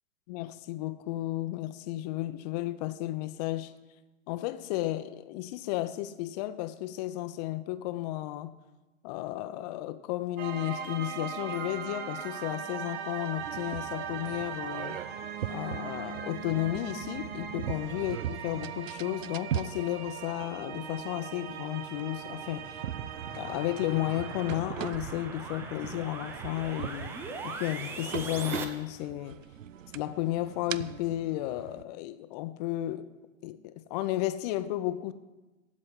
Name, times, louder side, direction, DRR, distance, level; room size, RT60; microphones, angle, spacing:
voice 1, 0.3-3.7 4.3-8.5 9.0-15.0 15.5-22.8 23.3-27.2 27.4-29.4 29.9-33.1 33.4-35.1, left 15 dB, 30° left, 0.7 m, -33 dB
sound 1, 10.4-24.8, right 8 dB, 45° right, 1.5 m, -40 dB
sound 2, 13.4-31.8, right 10 dB, 70° right, 0.7 m, -41 dB
sound 3, 22.1-28.6, right 4 dB, 5° right, 0.4 m, -41 dB
16.0 x 5.3 x 9.8 m
hypercardioid pair, 120°, 40 cm